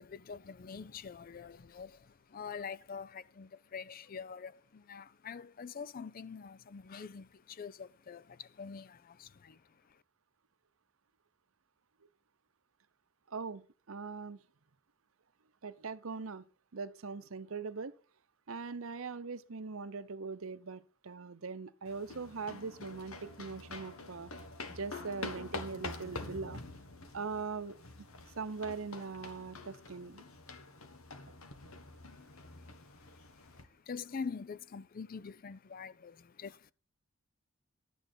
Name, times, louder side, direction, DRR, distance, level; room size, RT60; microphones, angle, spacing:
voice 1, 0.0-9.6 33.9-36.7, left 5 dB, 45° left, 0.4 m, -45 dB
voice 2, 13.3-13.6 13.9-14.4 15.6-16.4 16.7-17.9 18.5-24.3 24.7-26.6 27.1-27.8 28.4-30.2, right 4 dB, 75° right, 0.8 m, -41 dB
sound 1, 21.9-33.6, left 3 dB, 85° left, 1.5 m, -46 dB
11.5 x 9.0 x 4.4 m
head